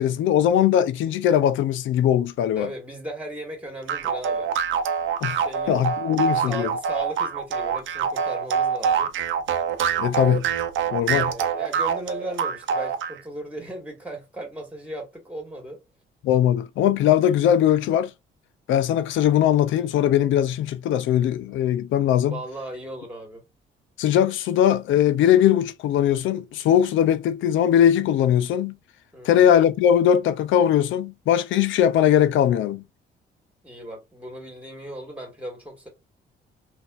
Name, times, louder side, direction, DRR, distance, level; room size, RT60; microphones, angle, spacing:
voice 1, 0.0-2.7 5.2-6.7 10.0-10.5 10.9-11.3 16.2-18.1 18.7-22.4 24.0-28.7 29.2-32.8, left 10 dB, 75° left, 0.5 m, -20 dB
voice 2, 2.5-4.5 5.4-5.9 6.4-9.1 11.2-15.8 22.2-23.4 29.1-29.5 33.6-35.9, right 1 dB, 5° right, 1.7 m, -36 dB
sound 1, 3.9-13.2, right 7 dB, 75° right, 0.7 m, -25 dB
3.9 x 2.6 x 2.4 m
cardioid pair, 90°, 20 cm